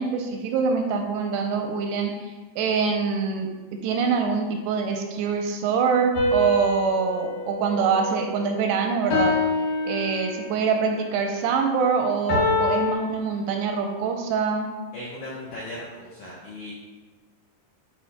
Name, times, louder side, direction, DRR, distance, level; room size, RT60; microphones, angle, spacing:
voice 1, 0.0-9.4 9.8-14.7, right 5 dB, 85° right, 3 dB, 2.7 m, -25 dB
sound 1, 6.1-8.5 9.1-10.7 12.3-12.9, left 3 dB, 55° left, 2.5 m, -26 dB
voice 2, 14.9-16.7, left 1 dB, 85° left, -6 dB, 1.7 m, -37 dB
10.5 x 4.4 x 2.2 m, 1.2 s
omnidirectional pair, 4.9 m